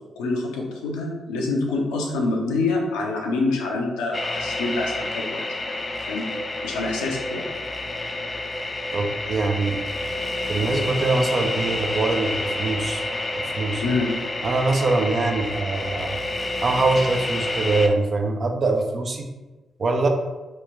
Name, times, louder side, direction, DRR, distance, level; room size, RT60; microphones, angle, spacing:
voice 1, 0.2-5.7 6.1-6.2 6.6-7.5 13.8-14.2, left 3 dB, 85° left, -1 dB, 0.5 m, -26 dB
sound 1, 4.1-17.9, left 2 dB, 35° left, 0.4 m, -29 dB
voice 2, 8.9-9.8 10.5-13.0 13.4-13.8 14.4-16.2 16.6-19.3 19.8-20.1, right 3 dB, 50° right, 4 dB, 0.5 m, -23 dB
3.1 x 2.2 x 3.5 m, 1.2 s
hypercardioid pair, 40°, 0 cm